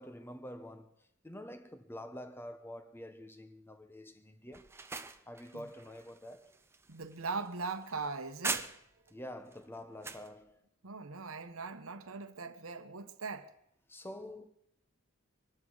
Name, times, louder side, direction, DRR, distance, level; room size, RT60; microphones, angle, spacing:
voice 1, 0.0-4.7 5.3-6.5 9.1-10.6 13.9-14.5, left 1 dB, 10° left, 0.9 m, -47 dB
sound 1, 4.5-9.1 9.5-10.3, right 4 dB, 10° right, 0.5 m, -42 dB
voice 2, 6.9-8.7 10.8-13.5, right 4 dB, 85° right, 1.1 m, -40 dB
24.0 x 12.5 x 4.0 m
head